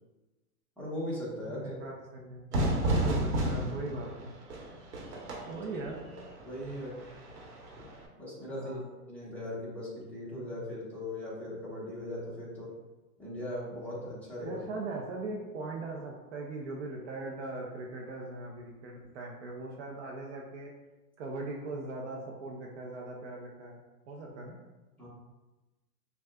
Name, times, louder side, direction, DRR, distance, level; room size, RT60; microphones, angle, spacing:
voice 1, 0.8-1.8 6.4-7.0 8.2-8.8 9.1-12.7 13.2-14.6 25.0-25.1, left 1 dB, 5° left, -9 dB, 1.0 m, -39 dB
voice 2, 1.4-2.5 2.9-4.3 5.4-6.1 8.5-8.9 14.4-20.7 21.2-23.8 24.1-24.6, right 2 dB, 50° right, -1 dB, 0.7 m, -40 dB
Fire / Fireworks, 2.5-8.0, right 1 dB, 85° right, 1.3 m, -33 dB
6.1 x 2.3 x 2.3 m, 1.1 s
hypercardioid pair, 140°, 46 cm